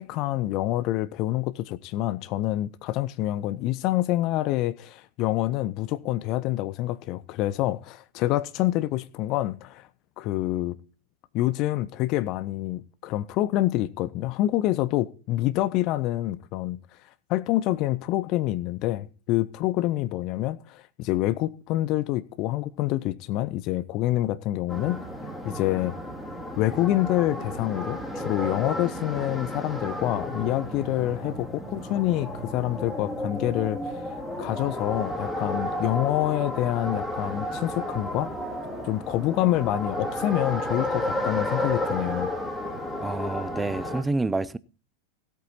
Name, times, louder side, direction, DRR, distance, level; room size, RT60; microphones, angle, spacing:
voice 1, 0.0-9.9 10.2-10.8 11.3-16.8 17.3-25.0 25.4-25.9 26.6-34.0 34.4-38.3 38.8-42.3, left 15 dB, 40° left, 0.6 m, -27 dB
sound 1, 24.7-44.0, left 1 dB, 5° left, 2.8 m, -32 dB
voice 2, 43.0-44.6, right 2 dB, 10° right, 0.5 m, -28 dB
17.0 x 8.4 x 4.1 m
figure-of-eight pair, 90°, 0 cm